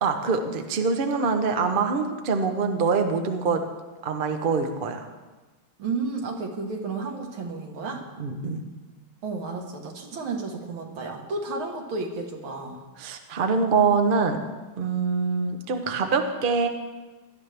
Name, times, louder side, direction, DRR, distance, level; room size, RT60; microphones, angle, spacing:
voice 1, 0.0-3.6 4.0-5.0 8.2-8.6 13.0-14.4 14.8-16.7, right 4 dB, 50° right, 5 dB, 0.6 m, -24 dB
voice 2, 5.8-8.1 9.2-12.8, right 3 dB, 75° right, 2 dB, 2.2 m, -32 dB
17.0 x 12.0 x 3.4 m, 1.2 s
omnidirectional pair, 2.3 m